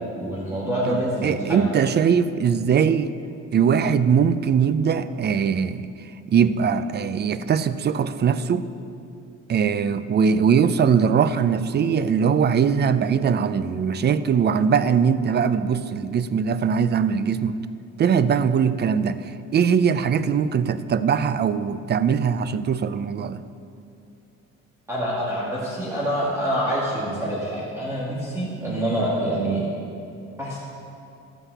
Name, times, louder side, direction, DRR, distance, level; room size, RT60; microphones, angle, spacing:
voice 1, 0.2-1.7 24.9-29.7 30.4-30.6, right 1 dB, 10° right, -8 dB, 2.2 m, -26 dB
voice 2, 0.9-3.1 3.5-8.7 9.5-17.6 18.0-23.4, right 7 dB, 35° right, 13 dB, 0.4 m, -21 dB
13.0 x 5.6 x 8.1 m, 2.6 s
cardioid pair, 115°, 31 cm